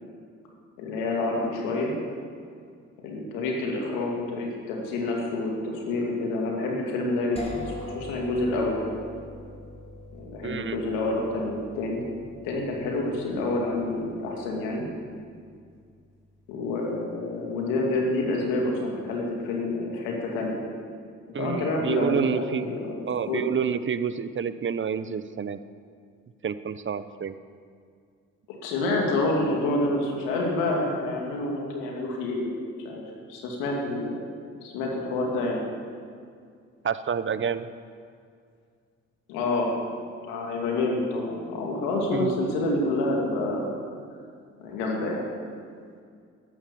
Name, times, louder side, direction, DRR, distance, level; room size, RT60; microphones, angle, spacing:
voice 1, 0.8-1.9 3.0-8.9 10.1-12.0 12.4-14.9 16.5-20.6 21.4-23.5 28.5-32.6 32.8-33.0 33.3-34.2 34.6-35.6 39.3-39.8 40.3-43.7 44.6-45.3, left 2 dB, 85° left, -1 dB, 2.5 m, -28 dB
sound 1, 7.4-17.1, left 1 dB, 20° left, 3.2 m, -44 dB
voice 2, 10.4-10.8 21.3-22.7 23.1-25.6 26.4-27.3 36.8-37.7 42.1-42.4, right 7 dB, 40° right, 13 dB, 0.8 m, -28 dB
13.0 x 11.0 x 7.0 m, 2.2 s
hypercardioid pair, 50°, 31 cm